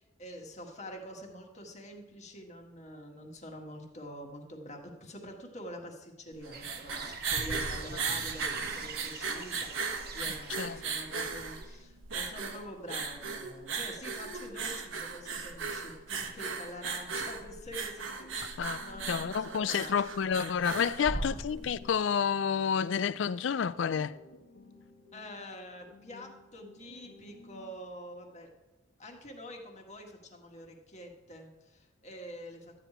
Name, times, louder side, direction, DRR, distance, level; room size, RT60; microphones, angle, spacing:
voice 1, 0.0-20.0 20.9-21.4 25.1-28.5 29.0-32.8, equal, 35° left, 1.7 m, -46 dB
sound 1, 6.3-21.8, right 5 dB, 90° right, 1.2 m, -36 dB
sound 2, 6.5-11.8, right 6 dB, 55° right, 1.1 m, -46 dB
sound 3, 17.9-27.9, left 3 dB, 90° left, 1.4 m, -55 dB
voice 2, 19.1-24.1, left 7 dB, 70° left, 0.4 m, -30 dB
12.5 x 5.0 x 8.9 m
head